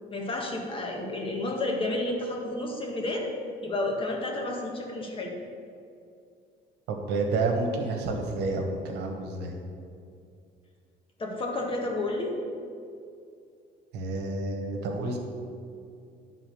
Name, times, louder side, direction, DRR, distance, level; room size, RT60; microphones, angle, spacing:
voice 1, 0.1-3.3 3.6-5.3 11.2-12.4, left 2 dB, 30° left, 0 dB, 1.6 m, -31 dB
voice 2, 6.9-9.6 13.9-15.2, right 3 dB, 80° right, 2 dB, 1.3 m, -29 dB
10.5 x 3.9 x 6.4 m, 2.4 s
cardioid pair, 110°, 17 cm